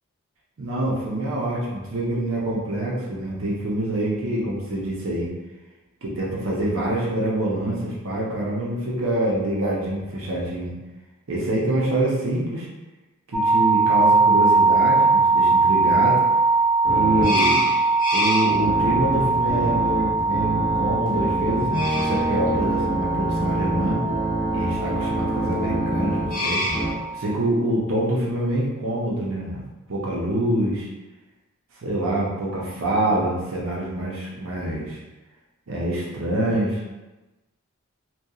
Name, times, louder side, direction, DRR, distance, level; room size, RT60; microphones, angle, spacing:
voice 1, 0.6-5.3 6.0-10.7 11.3-12.7 13.3-16.2 16.9-17.7 18.1-24.0 24.5-26.6 27.1-29.6 29.9-30.9 31.8-35.0 35.7-36.8, right 1 dB, 65° right, -4 dB, 0.6 m, -26 dB
sound 1, 13.3-27.4, right 3 dB, 5° right, 0.3 m, -22 dB
sound 2, 16.8-26.9, equal, 40° left, 0.6 m, -26 dB
2.8 x 2.2 x 2.3 m, 1.1 s
head